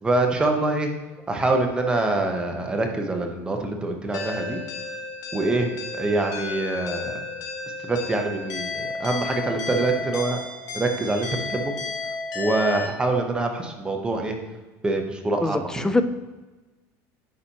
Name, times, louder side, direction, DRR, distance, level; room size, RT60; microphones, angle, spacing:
voice 1, 0.0-0.9 1.3-4.6 5.3-7.2 7.8-10.4 10.7-11.7 12.3-14.3 14.8-15.9, right 2 dB, 10° right, 3 dB, 0.8 m, -25 dB
sound 1, 4.1-12.9, left 3 dB, 45° left, 1.1 m, -32 dB
voice 2, 15.4-16.0, left 2 dB, 10° left, 10 dB, 0.3 m, -23 dB
9.6 x 4.3 x 2.8 m, 1.2 s
cardioid pair, 145°, 8 cm